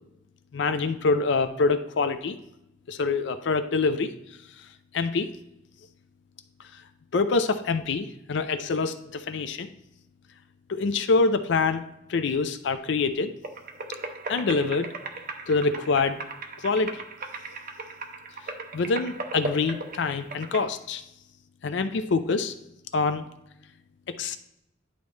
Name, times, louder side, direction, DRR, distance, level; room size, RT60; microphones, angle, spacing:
voice 1, 0.5-2.4 2.9-4.1 4.6-4.7 4.9-5.3 6.7-6.8 7.1-9.7 10.7-11.8 12.1-13.3 14.3-14.9 15.5-16.2 16.6-17.0 18.7-21.0 21.6-22.5 22.9-23.3 24.1-24.4, left 4 dB, 65° left, 11 dB, 0.4 m, -25 dB
sound 1, 13.4-20.6, right 3 dB, 45° right, 0.7 m, -37 dB
11.0 x 4.0 x 3.2 m, 0.86 s
head